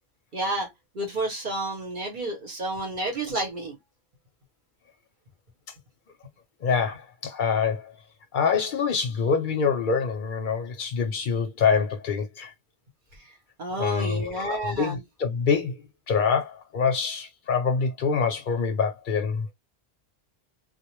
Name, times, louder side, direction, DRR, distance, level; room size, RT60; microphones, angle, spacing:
voice 1, 0.3-0.7 0.9-3.8 13.6-15.0, right 1 dB, 50° right, 1.0 m, -30 dB
voice 2, 6.6-7.9 8.3-12.5 13.8-15.8 16.1-19.5, left 6 dB, 60° left, 0.6 m, -25 dB
2.1 x 2.1 x 2.9 m
omnidirectional pair, 1.1 m